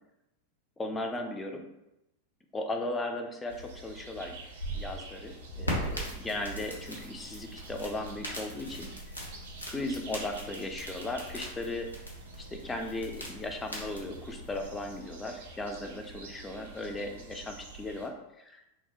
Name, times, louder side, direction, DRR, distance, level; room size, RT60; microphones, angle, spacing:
voice 1, 0.8-1.7 2.5-4.4 4.7-8.9 9.7-11.9 12.4-18.6, left 2 dB, 15° left, 4 dB, 0.3 m, -37 dB
sound 1, 3.5-18.1, right 3 dB, 60° right, 0.4 m, -48 dB
sound 2, 4.4-15.0, equal, 85° left, 0.6 m, -40 dB
2.4 x 2.0 x 2.8 m, 0.89 s
figure-of-eight pair, 90°, 0 cm